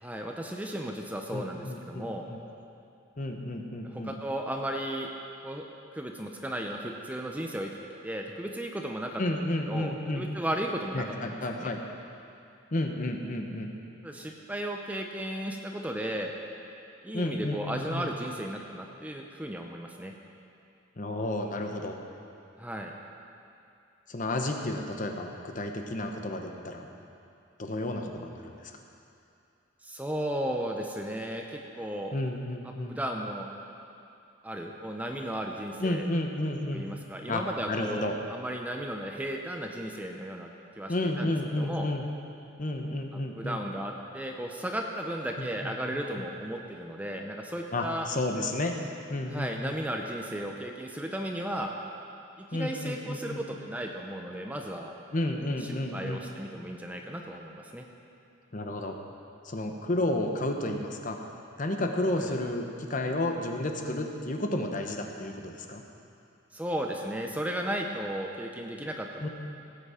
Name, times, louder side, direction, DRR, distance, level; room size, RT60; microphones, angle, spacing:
voice 1, 0.0-2.3 3.8-5.1 5.4-5.7 5.9-7.7 8.0-9.2 9.7-11.7 14.0-16.3 17.0-20.1 22.6-22.9 29.8-32.1 32.6-33.5 34.4-36.1 36.7-40.5 40.8-41.9 43.4-48.1 49.3-51.7 52.4-54.9 55.6-57.9 62.2-62.3 66.5-69.1, right 1 dB, 10° right, 2 dB, 0.6 m, -35 dB
voice 2, 1.3-2.4 3.2-4.1 9.2-10.3 10.9-11.8 12.7-13.7 17.1-18.1 21.0-22.0 24.1-26.9 27.6-28.7 32.1-33.0 35.8-36.8 37.3-38.1 40.9-42.0 42.6-43.6 45.6-46.2 47.7-48.7 49.1-49.7 52.5-53.4 55.1-56.2 58.5-59.0 59.4-61.2 61.6-65.8 69.2-69.3, left 1 dB, 40° left, 3 dB, 0.9 m, -32 dB
17.5 x 8.2 x 4.9 m, 2.6 s
head